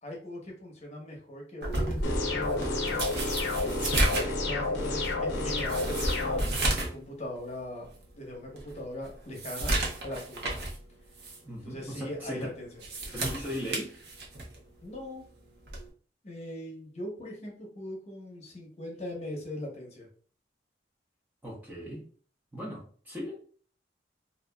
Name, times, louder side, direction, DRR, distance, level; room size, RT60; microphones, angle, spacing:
voice 1, 0.0-3.0 3.6-3.8 4.1-7.9 8.2-9.8 10.0-10.5 11.6-12.7 14.8-15.2 16.2-20.1, left 1 dB, 35° left, -1 dB, 0.8 m, -40 dB
sound 1, 1.6-7.0 7.4-7.5 8.0-8.1 8.6-10.8 11.2-11.4 12.6-14.6 15.7-15.9, right 1 dB, 60° right, 0.7 m, -32 dB
sound 2, 2.0-6.4, left 2 dB, 75° left, 0.6 m, -30 dB
voice 2, 11.4-12.5 13.1-13.9 21.4-22.0 22.5-23.3, equal, 10° right, -4 dB, 0.6 m, -37 dB
2.7 x 2.4 x 2.2 m, 0.43 s
head